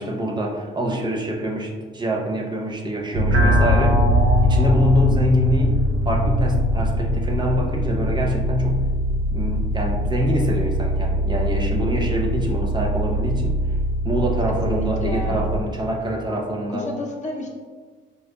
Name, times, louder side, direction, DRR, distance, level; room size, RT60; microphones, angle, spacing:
voice 1, 0.0-4.0 4.4-5.7 6.0-8.8 9.3-13.8 14.0-16.8, equal, 20° right, -1 dB, 0.6 m, -25 dB
sound 1, 3.1-15.6, equal, 80° right, 0.6 m, -21 dB
voice 2, 14.5-15.5 16.7-17.5, left 1 dB, 35° left, -2 dB, 0.7 m, -31 dB
5.0 x 2.1 x 2.2 m, 1.5 s
cardioid pair, 90°, 20 cm